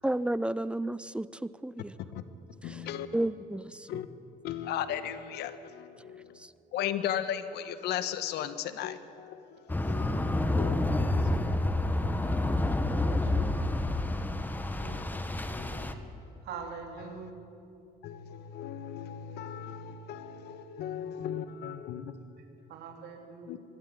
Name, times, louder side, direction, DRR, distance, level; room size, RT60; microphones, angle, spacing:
voice 1, 0.0-1.9 2.6-2.8 3.1-3.9 6.4-6.5, right 1 dB, 5° right, 17 dB, 0.5 m, -32 dB
voice 2, 2.6-3.1 3.9-4.1 4.4-6.4 6.7-11.7 14.7-16.1 17.1-17.3 18.0-22.1 23.5-23.6, left 10 dB, 80° left, 11 dB, 1.2 m, -37 dB
sound 1, 9.7-15.9, left 2 dB, 10° left, 1.2 m, -29 dB
voice 3, 10.9-12.6 12.9-13.5 15.8-16.0 16.4-17.3 22.7-23.6, right 5 dB, 75° right, 3 dB, 3.3 m, -45 dB
23.5 x 12.0 x 9.9 m, 2.7 s
cardioid pair, 110°, 17 cm